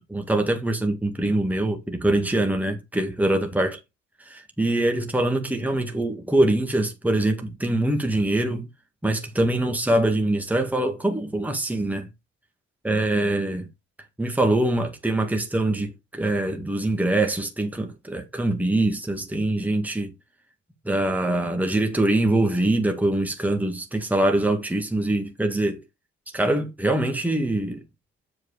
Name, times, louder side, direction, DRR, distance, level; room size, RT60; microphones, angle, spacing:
voice 1, 0.1-3.8 4.2-8.7 9.0-12.1 12.8-13.7 14.2-20.1 20.8-25.8 26.3-27.8, right 1 dB, 5° right, 1.8 m, -23 dB
7.8 x 4.7 x 4.8 m
cardioid pair, 90°, 30 cm